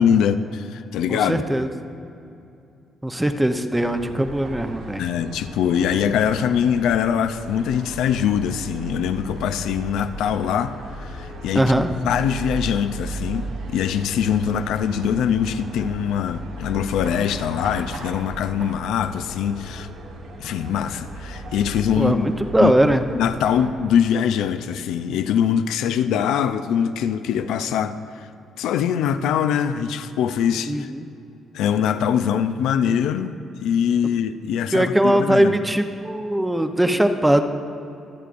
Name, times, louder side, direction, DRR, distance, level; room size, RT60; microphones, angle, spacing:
voice 1, 0.0-1.4 5.0-19.9 20.4-22.3 22.6-28.3 28.6-30.9 31.5-35.6, left 8 dB, 85° left, 0.4 m, -23 dB
voice 2, 1.1-1.7 3.0-5.0 11.5-11.9 22.0-23.0 30.7-31.1 34.7-37.4, right 1 dB, 10° right, 0.7 m, -20 dB
sound 1, 3.7-23.7, right 2 dB, 90° right, 1.3 m, -36 dB
24.0 x 8.2 x 2.6 m
cardioid pair, 90°, 0 cm